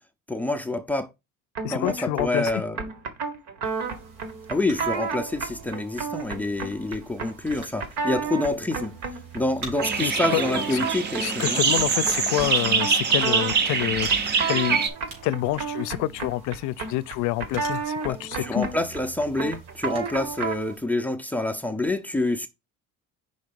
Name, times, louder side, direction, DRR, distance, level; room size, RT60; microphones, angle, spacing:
voice 1, 0.3-1.1 1.7-2.8 4.5-9.0 9.3-11.6 18.1-22.5, left 2 dB, 5° left, 0.5 m, -27 dB
sound 1, 1.5-20.7, right 5 dB, 60° right, 1.6 m, -32 dB
voice 2, 1.6-2.6 10.0-10.8 11.2-14.1 14.5-14.8 15.2-18.7, left 16 dB, 65° left, 0.6 m, -27 dB
sound 2, 3.6-20.8, right 2 dB, 80° right, 3.4 m, -47 dB
sound 3, 9.8-14.9, right 5 dB, 35° right, 0.7 m, -24 dB
5.4 x 3.9 x 5.2 m
cardioid pair, 155°, 31 cm